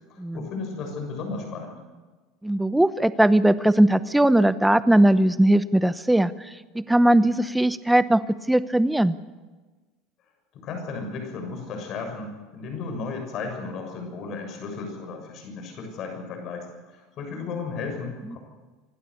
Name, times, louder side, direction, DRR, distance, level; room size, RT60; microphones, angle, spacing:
voice 1, 0.1-1.8 10.5-16.7 16.9-18.4, left 4 dB, 45° left, 4 dB, 7.0 m, -34 dB
voice 2, 2.4-9.2 18.3-18.4, right 1 dB, 5° right, 14 dB, 0.8 m, -20 dB
26.0 x 12.0 x 8.6 m, 1.3 s
supercardioid pair, 125°, 0 cm